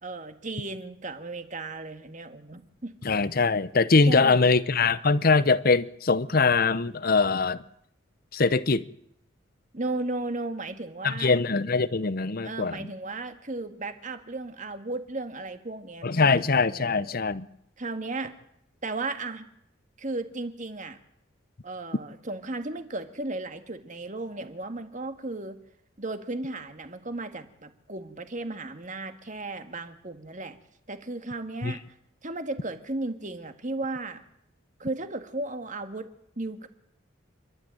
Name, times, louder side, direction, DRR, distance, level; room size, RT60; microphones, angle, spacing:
voice 1, 0.0-2.9 4.0-4.5 9.7-11.3 12.4-17.2 17.8-18.3 18.8-19.5 20.0-21.0 21.6-25.6 26.0-30.6 30.9-31.8 32.2-34.2 34.8-36.1 36.4-36.7, right 2 dB, 40° right, 1.8 m, -35 dB
voice 2, 3.0-7.6 8.3-8.9 11.0-12.9 16.0-17.5 31.6-31.7, left 4 dB, 45° left, 0.8 m, -22 dB
28.5 x 12.5 x 9.0 m
head